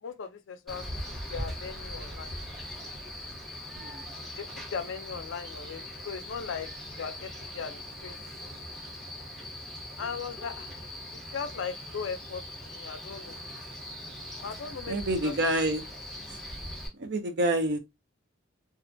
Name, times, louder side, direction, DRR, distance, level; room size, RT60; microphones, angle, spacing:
voice 1, 0.0-0.9 1.3-2.3 4.4-6.7 7.0-8.2 10.0-10.7 11.1-13.4 14.4-15.0 15.2-15.4, left 6 dB, 70° left, 0.4 m, -38 dB
Male speech man speaking, 0.7-16.9, left 1 dB, ahead, 0.8 m, -41 dB
voice 2, 14.9-15.8 17.0-17.8, right 1 dB, 55° right, 0.5 m, -27 dB
2.4 x 2.1 x 2.5 m
head